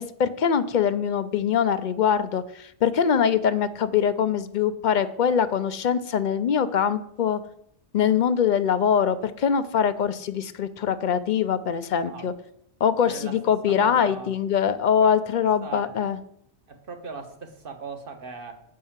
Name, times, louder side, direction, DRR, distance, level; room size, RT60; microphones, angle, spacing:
voice 1, 0.0-7.4 7.9-12.3 12.8-16.2, left 7 dB, 55° left, 12 dB, 0.5 m, -23 dB
voice 2, 13.0-13.4 13.6-14.3 15.0-15.1 15.6-15.9 16.7-18.6, right 5 dB, 55° right, 6 dB, 1.3 m, -38 dB
7.5 x 5.5 x 7.2 m, 0.73 s
omnidirectional pair, 1.2 m